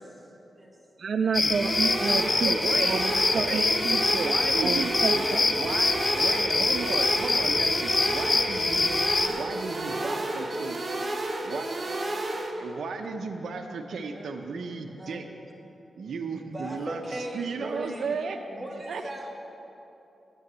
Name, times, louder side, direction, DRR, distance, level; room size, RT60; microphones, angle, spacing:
voice 1, 1.0-2.6 2.8-5.7, right 5 dB, 55° right, 6 dB, 0.4 m, -30 dB
sound 1, 1.3-9.3, left 3 dB, 30° left, 0.4 m, -25 dB
sound 2, 1.5-12.5, right 1 dB, 30° right, 1.1 m, -32 dB
voice 2, 2.4-3.0 3.3-3.7 4.2-5.0 5.5-10.8 11.4-11.7 12.6-15.2 16.0-18.4 18.7-19.0, right 4 dB, 80° right, 5 dB, 0.7 m, -34 dB
voice 3, 9.0-9.3 9.7-11.2 11.9-12.8 14.1-14.3 14.9-15.2 16.1-18.1 18.5-19.4, right 1 dB, 10° right, -2 dB, 1.5 m, -40 dB
9.6 x 9.0 x 7.4 m, 2.9 s
wide cardioid pair, 170°, 0 cm